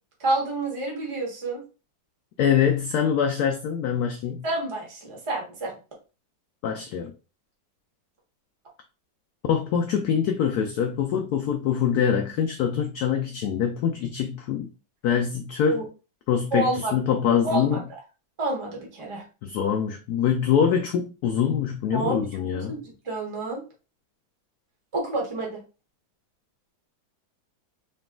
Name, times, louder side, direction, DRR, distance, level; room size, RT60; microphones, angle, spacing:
voice 1, 0.2-1.6 4.4-5.7 15.7-15.8 16.5-16.9 17.4-17.8 18.4-19.2 21.9-22.2 22.5-23.6 24.9-25.6, right 2 dB, 20° right, -1 dB, 0.9 m, -28 dB
voice 2, 2.4-4.4 6.6-7.1 9.4-14.7 15.0-15.8 16.3-17.8 19.4-22.8, left 8 dB, 80° left, 4 dB, 0.8 m, -24 dB
3.9 x 2.2 x 3.7 m, 0.32 s
omnidirectional pair, 2.1 m